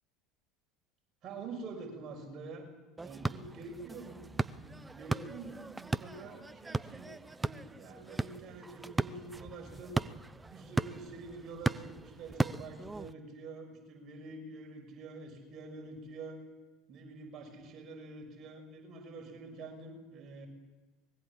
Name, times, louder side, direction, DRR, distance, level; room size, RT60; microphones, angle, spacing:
voice 1, 1.2-2.6 3.0-10.0 10.5-16.4 16.9-20.5, right 3 dB, 45° right, 3 dB, 6.3 m, -46 dB
sound 1, 3.0-13.1, right 3 dB, 15° right, 0.7 m, -37 dB
24.0 x 21.0 x 7.3 m, 1.2 s
hypercardioid pair, 75°, 0 cm